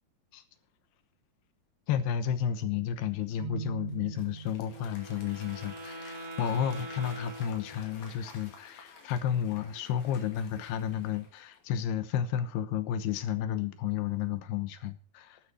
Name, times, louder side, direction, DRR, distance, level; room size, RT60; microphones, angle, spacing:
voice 1, 1.9-15.4, left 9 dB, 85° left, 3.1 m, -32 dB
Keyboard (musical), 3.4-5.3, right 7 dB, 70° right, 1.5 m, -41 dB
Applause / Crowd, 3.9-11.7, left 4 dB, 50° left, 3.4 m, -52 dB
Wind instrument woodwind instrument, 4.7-8.3, right 1 dB, 55° right, 3.6 m, -44 dB
12.0 x 9.8 x 6.0 m
omnidirectional pair, 4.5 m